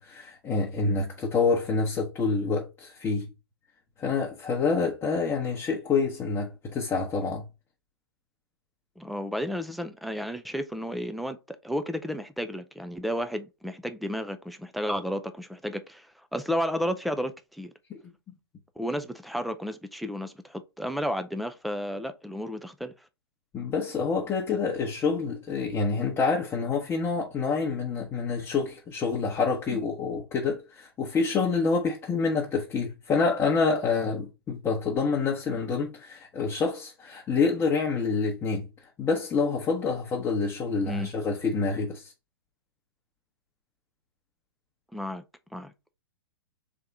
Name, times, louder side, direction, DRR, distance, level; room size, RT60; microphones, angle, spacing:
voice 1, 0.0-3.3 4.0-7.4 17.9-18.1 23.5-42.1, left 4 dB, 15° left, 0.9 m, -27 dB
voice 2, 9.0-17.7 18.8-23.1 29.7-29.8 40.8-41.1 44.9-45.2 45.5-45.9, equal, ahead, 0.3 m, -32 dB
3.5 x 3.4 x 4.0 m
figure-of-eight pair, 115°, 13 cm